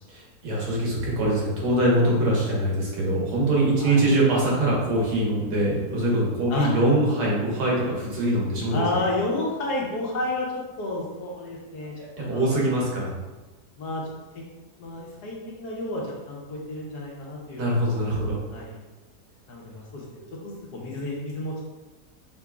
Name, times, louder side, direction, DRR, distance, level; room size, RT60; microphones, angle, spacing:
voice 1, 0.1-8.8 12.3-13.1 17.6-18.4 20.2-20.3, right 1 dB, 75° right, -4 dB, 1.7 m, -23 dB
voice 2, 8.7-12.7 13.8-14.1 14.8-18.2 18.5-18.8 19.5-21.7, left 2 dB, 80° left, -3 dB, 1.5 m, -31 dB
5.8 x 3.0 x 2.3 m, 1.2 s
omnidirectional pair, 1.7 m